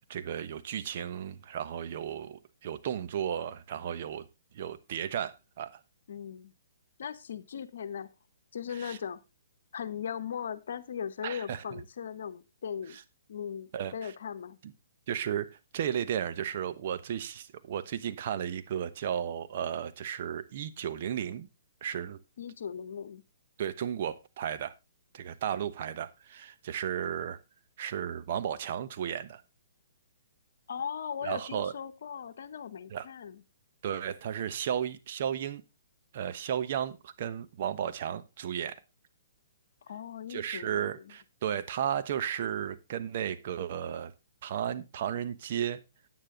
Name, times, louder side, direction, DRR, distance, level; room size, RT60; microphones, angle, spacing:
voice 1, 0.1-4.3 4.5-5.8 8.7-9.0 11.2-11.8 12.9-13.0 13.7-14.1 14.6-14.7 15.1-21.5 21.8-22.2 23.6-24.7 25.1-27.4 27.8-29.4 31.2-31.7 32.9-33.1 33.8-35.6 36.1-38.8 40.3-44.1 44.4-45.8, right 9 dB, 50° right, 1.1 m, -34 dB
voice 2, 6.1-6.5 7.0-8.1 8.5-9.2 9.7-13.0 13.3-14.6 22.4-23.2 30.7-33.4 39.8-41.1, left 8 dB, 65° left, 1.1 m, -38 dB
9.6 x 9.1 x 3.7 m
hypercardioid pair, 135°, 0 cm